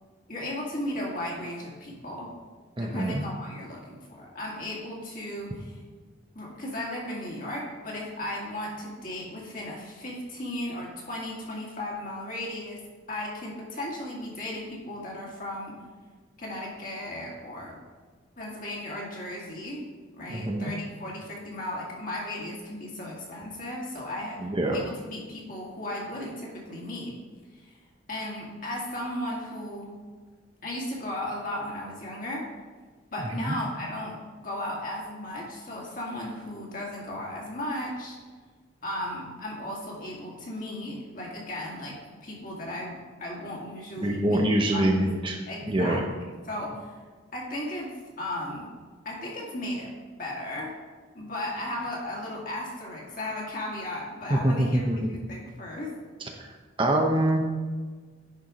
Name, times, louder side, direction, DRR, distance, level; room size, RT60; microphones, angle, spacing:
voice 1, 0.3-2.3 2.8-5.8 6.3-12.8 13.1-15.8 16.4-17.8 18.4-19.9 20.1-27.1 27.5-27.7 28.1-29.9 30.6-32.5 33.1-38.2 38.8-44.4 44.7-45.1 45.5-46.0 46.4-47.0 47.3-48.7 49.0-49.9 50.2-50.7 51.1-56.0, left 1 dB, 45° left, -3 dB, 2.1 m, -35 dB
voice 2, 2.8-3.2 20.3-20.7 24.4-24.8 33.5-33.6 44.0-45.4 45.7-46.0 54.3-55.1 56.2-56.5 56.8-57.4, right 1 dB, 25° right, 2 dB, 0.7 m, -25 dB
10.5 x 4.4 x 5.1 m, 1.4 s
head